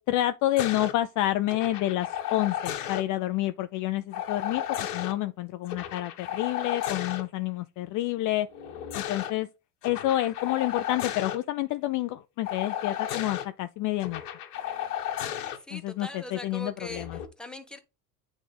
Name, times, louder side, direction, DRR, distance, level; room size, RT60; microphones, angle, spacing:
voice 1, 0.0-4.6 4.9-8.5 8.9-9.5 9.8-14.2 15.7-16.1 16.4-17.1, left 15 dB, 45° left, 0.4 m, -28 dB
sound 1, 0.6-0.9 1.5-3.0 4.1-5.1 5.7-7.2 8.5-9.3 9.8-11.4 12.4-13.4 14.0-15.6 16.9-17.2, left 11 dB, 85° left, 1.2 m, -33 dB
voice 2, 15.6-17.8, left 1 dB, ahead, 1.0 m, -41 dB
9.2 x 3.6 x 3.4 m
supercardioid pair, 95°, 45 cm